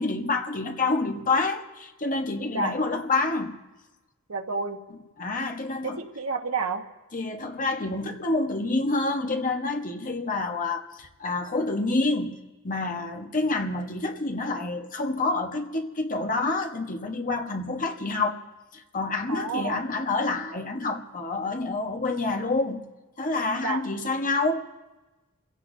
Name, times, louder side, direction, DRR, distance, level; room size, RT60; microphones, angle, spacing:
voice 1, 0.0-3.6 5.2-6.0 7.1-12.4 12.6-18.4 18.7-22.8 23.2-24.7, left 3 dB, 40° left, 1.2 m, -28 dB
voice 2, 4.3-4.8 5.8-6.8 19.3-19.8 23.6-23.8, right 4 dB, 90° right, 1.3 m, -29 dB
28.0 x 16.5 x 2.7 m
head